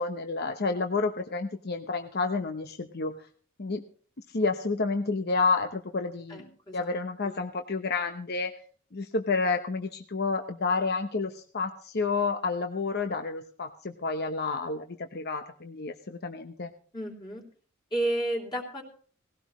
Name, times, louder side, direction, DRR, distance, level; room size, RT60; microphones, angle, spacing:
voice 1, 0.0-3.1 3.6-3.8 4.3-6.5 6.7-8.5 8.9-14.9 15.1-16.7, left 4 dB, 55° left, 6 dB, 0.9 m, -30 dB
voice 2, 6.3-6.9 7.2-7.4 16.9-17.4 17.9-18.8, right 1 dB, 20° left, -2 dB, 3.1 m, -32 dB
19.0 x 16.0 x 3.1 m, 0.43 s
head